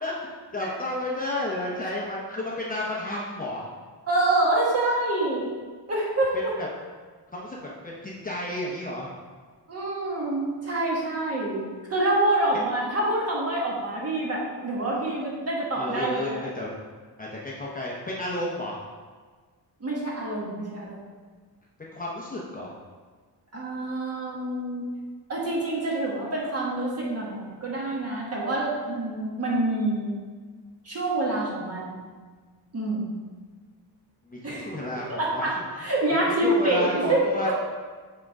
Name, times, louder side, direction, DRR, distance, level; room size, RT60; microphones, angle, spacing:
voice 1, 0.0-3.6 6.3-6.7 7.3-9.1 15.7-16.7 17.2-18.8 21.8-22.7 34.3-35.5 36.1-37.5, left 1 dB, 20° left, -4 dB, 0.7 m, -32 dB
voice 2, 4.1-5.5 5.9-6.4 9.7-11.6 11.9-16.4 19.8-21.0 23.5-24.8 25.3-30.1 30.8-32.0 32.7-33.1 34.4-34.7 35.1-37.5, right 2 dB, 35° right, -4 dB, 1.5 m, -26 dB
7.6 x 3.7 x 4.7 m, 1.5 s
wide cardioid pair, 165°, 43 cm